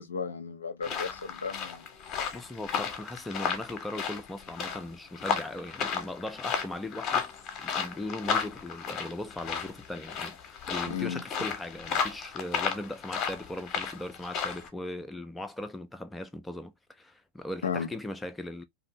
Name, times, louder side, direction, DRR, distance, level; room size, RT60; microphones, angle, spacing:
voice 1, 0.0-1.8 10.9-11.2 17.6-17.9, left 6 dB, 70° left, 0.4 m, -34 dB
sound 1, 0.8-14.7, left 6 dB, 30° left, 0.7 m, -34 dB
voice 2, 2.3-7.3 7.6-18.6, left 1 dB, 5° left, 0.3 m, -39 dB
2.6 x 2.5 x 2.7 m
figure-of-eight pair, 90°, 0 cm